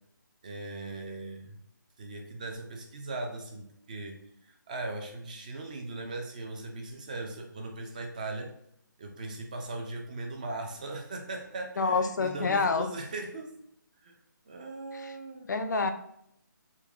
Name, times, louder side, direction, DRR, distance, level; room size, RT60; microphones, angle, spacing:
voice 1, 0.4-1.6 2.0-4.2 4.4-8.5 9.0-13.5 14.0-14.1 14.5-15.5, right 2 dB, 25° right, 3 dB, 0.3 m, -39 dB
voice 2, 11.8-12.9 14.9-15.1 15.5-15.9, left 4 dB, 60° left, 8 dB, 0.4 m, -27 dB
3.5 x 3.0 x 2.3 m, 0.74 s
figure-of-eight pair, 160°, 11 cm